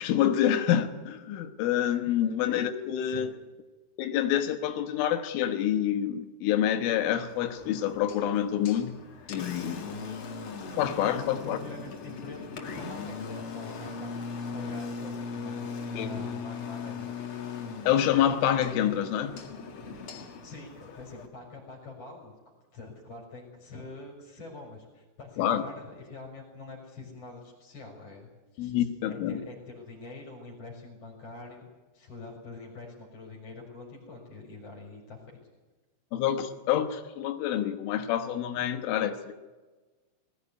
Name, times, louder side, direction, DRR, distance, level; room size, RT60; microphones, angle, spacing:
voice 1, 0.0-3.3 4.0-9.0 9.3-9.9 10.8-11.6 16.0-16.1 17.9-19.3 25.4-25.6 28.6-29.4 36.1-39.3, left 10 dB, 75° left, 3.6 m, -27 dB
voice 2, 2.0-2.4 3.1-3.3 9.9-10.2 11.1-14.1 14.5-17.1 20.4-22.3 22.7-31.6 31.9-35.4, left 3 dB, 30° left, 5.1 m, -45 dB
Engine, 7.2-21.3, left 5 dB, 60° left, 1.4 m, -39 dB
20.5 x 16.5 x 9.7 m
omnidirectional pair, 5.8 m